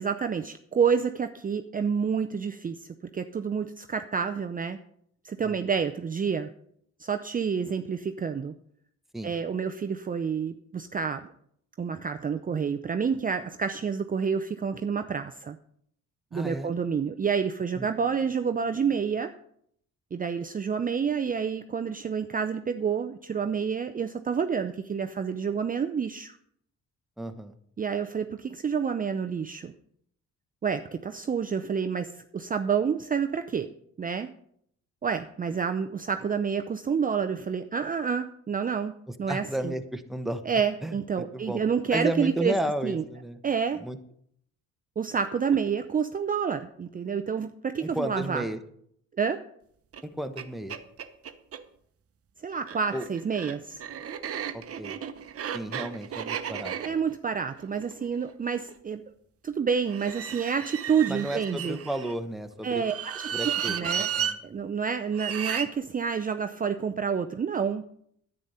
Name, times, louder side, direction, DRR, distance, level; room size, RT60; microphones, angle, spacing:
voice 1, 0.0-4.8 5.2-6.5 7.0-8.5 9.2-11.3 11.8-15.6 16.3-19.3 20.1-26.3 27.8-29.7 30.6-33.7 34.0-34.3 35.0-38.9 39.2-39.7 40.5-42.6 42.8-43.0 43.4-43.8 45.0-48.4 49.2-49.4 52.4-53.8 56.8-59.0 59.4-61.8 62.6-64.1 64.4-67.8, right 6 dB, 30° right, 8 dB, 0.6 m, -28 dB
voice 2, 16.3-16.7 17.8-17.9 27.2-27.5 39.3-40.4 40.8-41.6 41.9-43.4 43.7-44.0 47.8-48.6 50.0-50.8 52.9-53.1 54.5-55.0 55.5-56.7 61.1-62.8 63.3-64.4, right 1 dB, ahead, 7 dB, 1.1 m, -33 dB
sound 1, 49.9-50.0 50.4-50.5 50.7-51.6 52.5-58.7 59.9-62.1 62.8-64.4 65.1-65.7, right 8 dB, 50° right, 0.9 m, -34 dB
10.0 x 9.0 x 5.6 m, 0.69 s
cardioid pair, 90°, 30 cm